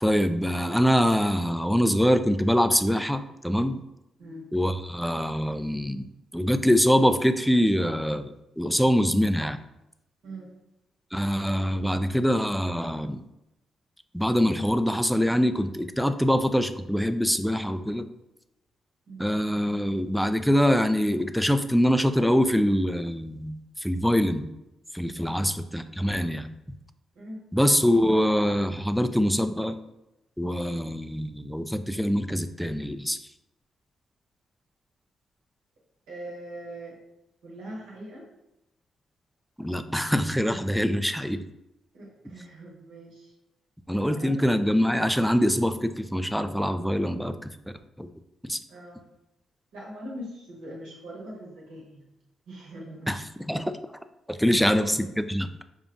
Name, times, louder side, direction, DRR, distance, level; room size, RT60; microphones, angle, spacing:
voice 1, 0.0-3.8 4.5-6.0 6.3-8.3 8.6-9.6 11.1-13.2 14.1-18.1 19.2-24.5 24.9-26.5 27.5-29.8 30.4-33.2 39.6-41.4 43.9-47.5 48.0-48.1 48.4-48.6 53.1-53.7 54.3-55.6, equal, ahead, 9 dB, 0.3 m, -24 dB
voice 2, 4.2-4.5 10.2-10.5 19.1-19.3 25.1-25.4 27.1-27.4 36.1-37.0 37.4-38.3 41.9-43.3 44.0-44.3 48.7-49.0 49.7-52.1 52.5-53.2 54.4-54.9, right 1 dB, 85° right, -6 dB, 1.2 m, -41 dB
5.2 x 2.3 x 2.5 m, 0.91 s
supercardioid pair, 55°, 0 cm